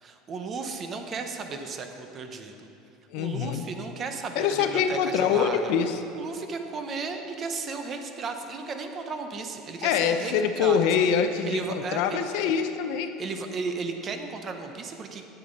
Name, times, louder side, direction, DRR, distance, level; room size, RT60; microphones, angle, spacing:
voice 1, 0.0-2.5 3.2-5.7 6.2-10.8 11.4-12.2 13.2-15.3, right 4 dB, 30° right, 6 dB, 0.7 m, -34 dB
voice 2, 3.1-3.7 4.4-6.0 9.8-13.1, left 7 dB, 65° left, 8 dB, 0.5 m, -25 dB
8.0 x 7.1 x 5.2 m, 2.7 s
cardioid pair, 145°, 0 cm